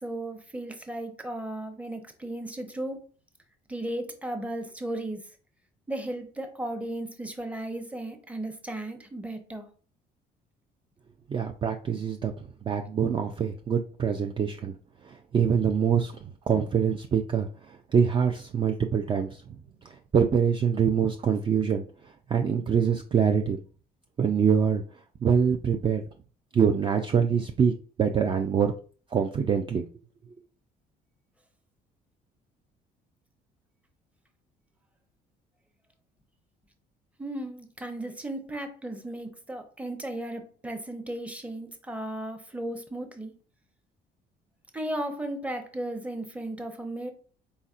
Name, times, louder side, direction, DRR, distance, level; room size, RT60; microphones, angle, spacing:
voice 1, 0.0-3.0 3.7-5.2 5.9-9.7 37.2-43.3 44.7-47.1, right 1 dB, 10° right, 0.8 m, -35 dB
voice 2, 11.3-12.3 12.7-14.7 15.1-16.1 16.5-19.4 20.1-21.8 22.3-23.6 24.2-24.8 25.2-26.0 26.5-27.7 28.0-28.7 29.1-29.8, right 7 dB, 30° right, 0.4 m, -24 dB
4.1 x 4.0 x 2.4 m
cardioid pair, 110°, 17 cm